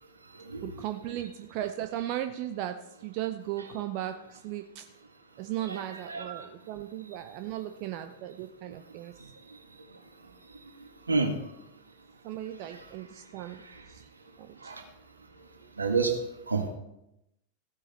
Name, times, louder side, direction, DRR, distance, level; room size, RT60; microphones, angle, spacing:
voice 1, 0.6-4.9 5.4-9.1 12.2-13.6 13.9-14.0 14.4-14.7, right 12 dB, 45° right, 8 dB, 0.7 m, -36 dB
voice 2, 6.1-6.5 11.1-11.4 12.7-12.8 14.6-14.8 15.8-16.1 16.5-16.7, right 4 dB, 75° right, 4 dB, 1.9 m, -28 dB
15.5 x 8.8 x 4.4 m, 0.87 s
figure-of-eight pair, 90°, 0 cm